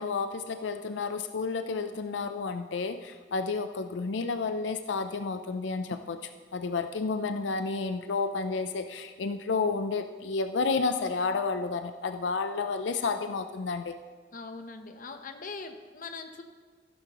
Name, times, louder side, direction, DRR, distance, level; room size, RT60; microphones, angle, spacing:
voice 1, 0.0-14.0, left 4 dB, 90° left, 8 dB, 0.5 m, -31 dB
voice 2, 14.3-16.4, left 4 dB, 50° left, 7 dB, 0.9 m, -41 dB
14.5 x 11.5 x 3.0 m, 1.5 s
head